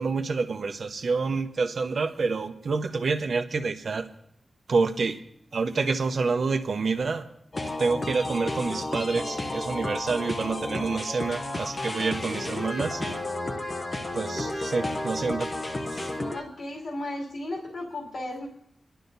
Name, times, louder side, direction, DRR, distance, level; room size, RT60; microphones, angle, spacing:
voice 1, 0.0-4.1 4.7-5.2 5.5-7.3 7.8-13.2 14.1-15.5 15.9-16.1, right 4 dB, 65° right, 8 dB, 0.8 m, -28 dB
sound 1, 7.5-16.4, left 2 dB, 35° left, 0.8 m, -32 dB
voice 2, 16.3-18.5, left 1 dB, 75° left, -2 dB, 2.6 m, -35 dB
24.0 x 11.5 x 2.7 m, 0.73 s
wide cardioid pair, 135°, 0 cm